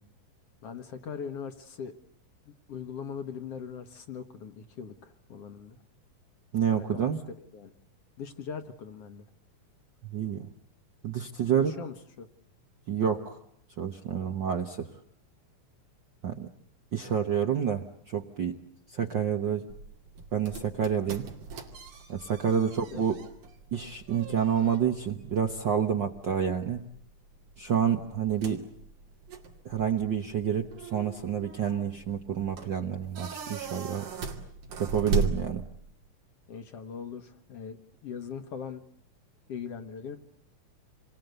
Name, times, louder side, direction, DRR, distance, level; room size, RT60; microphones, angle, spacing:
voice 1, 0.6-1.9 2.5-5.8 6.7-7.0 7.4-7.7 8.2-9.3 11.5-12.3 22.5-23.1 36.5-38.8 39.5-40.2, left 6 dB, 60° left, 7 dB, 1.9 m, -40 dB
voice 2, 6.5-7.2 10.1-10.5 11.0-11.7 12.9-13.4 13.8-14.9 16.2-16.5 16.9-18.6 18.9-19.6 20.3-21.2 22.1-23.2 23.7-26.8 27.6-28.6 29.6-34.0 34.8-35.6, right 8 dB, 55° right, 5 dB, 1.3 m, -28 dB
sound 1, 19.7-36.1, right 4 dB, 75° right, 4.1 m, -38 dB
28.0 x 22.5 x 8.0 m, 0.68 s
omnidirectional pair, 3.6 m